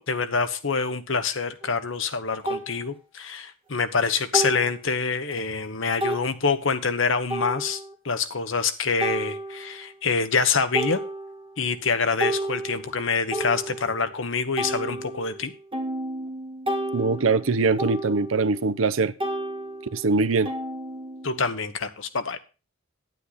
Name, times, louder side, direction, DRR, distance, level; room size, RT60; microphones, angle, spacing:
voice 1, 0.0-7.8 8.0-11.0 11.6-15.5 21.2-22.4, left 5 dB, 70° left, 1.1 m, -26 dB
sound 1, 1.6-1.7 2.5-2.7 4.3-4.7 5.3-5.4 6.0-6.3 7.3-7.9 9.0-9.8 10.3-10.4 10.7-11.6 11.9-14.1 14.6-18.9 19.2-21.5, right 1 dB, 25° right, 1.9 m, -31 dB
voice 2, 16.9-19.1 19.9-20.5, right 4 dB, 75° right, 0.7 m, -22 dB
9.9 x 9.2 x 4.1 m
head